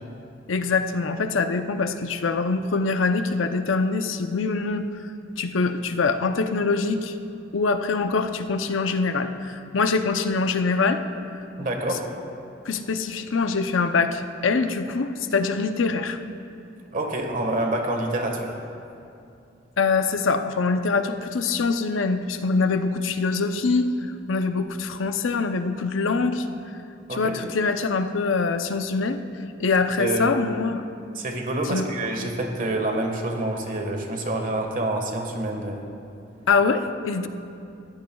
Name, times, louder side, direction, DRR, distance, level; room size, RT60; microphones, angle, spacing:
voice 1, 0.5-4.8 5.4-7.1 7.5-11.0 12.6-16.2 19.8-23.9 24.3-26.5 27.1-29.2 29.6-30.8 31.6-31.9 36.5-37.3, left 4 dB, 85° left, 8 dB, 0.6 m, -24 dB
voice 2, 11.6-12.0 16.9-18.5 27.1-27.3 30.0-30.3 31.1-35.8, right 1 dB, 45° right, 2 dB, 1.5 m, -27 dB
19.5 x 14.5 x 2.3 m, 2.6 s
head